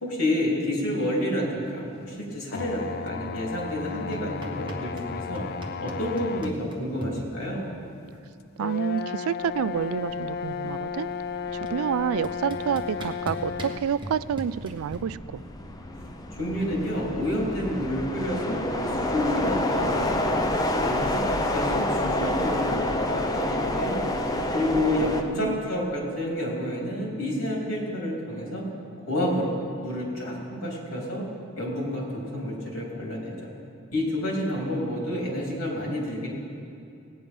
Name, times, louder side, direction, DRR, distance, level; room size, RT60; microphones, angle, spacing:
voice 1, 0.0-5.4 5.8-7.7 16.3-24.0 24.5-28.6 29.0-31.2 31.6-33.5 33.9-36.3, left 1 dB, 70° left, -3 dB, 3.4 m, -29 dB
sound 1, 2.5-6.6 7.3-7.4 8.6-13.9, left 6 dB, 45° left, 0.3 m, -34 dB
sound 2, 4.1-5.1 5.3-7.1 8.4-8.5 8.7-9.1 9.4-10.8 11.7-11.8 12.2-15.0, equal, 20° right, 1.3 m, -39 dB
voice 2, 8.6-11.1 11.5-15.4 25.0-25.6, right 8 dB, 75° right, 18 dB, 0.3 m, -29 dB
sound 3, 10.2-10.5 10.9-25.2, left 1 dB, 15° left, 0.7 m, -28 dB
17.0 x 9.5 x 5.4 m, 2.6 s
head